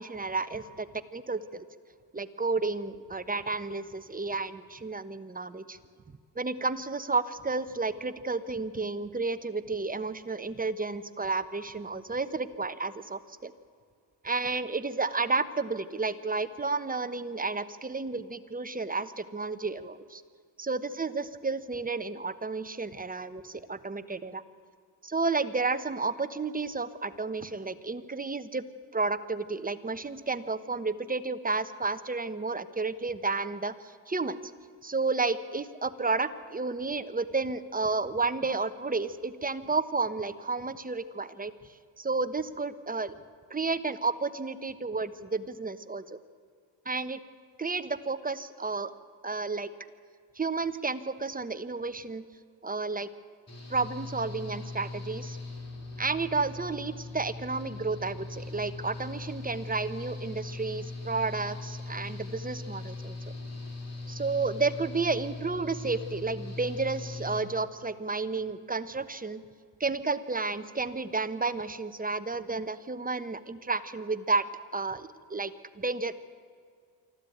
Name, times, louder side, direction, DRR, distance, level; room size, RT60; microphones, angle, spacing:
voice 1, 0.0-1.6 2.1-5.8 6.3-13.5 14.2-20.2 20.6-24.4 25.0-28.6 28.9-34.4 34.8-41.5 42.0-43.2 43.5-46.2 46.8-47.2 47.6-48.9 49.2-49.7 50.3-52.3 52.6-53.1 53.7-55.4 56.0-63.2 64.1-69.4 69.8-74.5 74.7-76.1, right 3 dB, 20° right, 12 dB, 1.0 m, -31 dB
Engine / Mechanical fan, 53.5-67.4, left 3 dB, 35° left, 4.7 m, -40 dB
24.5 x 14.5 x 9.3 m, 2.1 s
cardioid pair, 95°, 46 cm